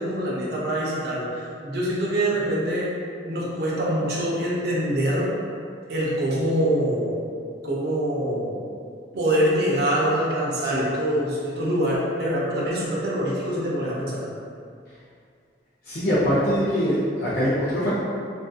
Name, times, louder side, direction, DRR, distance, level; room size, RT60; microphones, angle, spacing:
voice 1, 0.0-2.9 3.3-5.3 5.9-7.1 7.6-8.6 9.1-14.2, right 1 dB, 60° right, -6 dB, 0.5 m, -24 dB
voice 2, 15.8-18.0, equal, 55° left, -11 dB, 0.5 m, -23 dB
2.5 x 2.4 x 2.2 m, 2.3 s
head